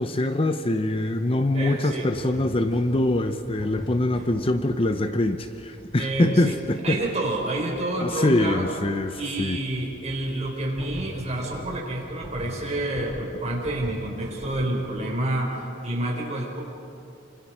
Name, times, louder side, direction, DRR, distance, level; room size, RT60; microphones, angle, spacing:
voice 1, 0.0-7.0 8.0-9.6, left 1 dB, 30° left, 8 dB, 0.7 m, -24 dB
voice 2, 1.5-2.1 6.0-6.6 6.8-8.7 9.2-16.6, right 1 dB, 35° right, -1 dB, 4.9 m, -28 dB
sound 1, 2.1-14.6, equal, ahead, 5.2 m, -42 dB
29.5 x 25.5 x 4.8 m, 2.8 s
head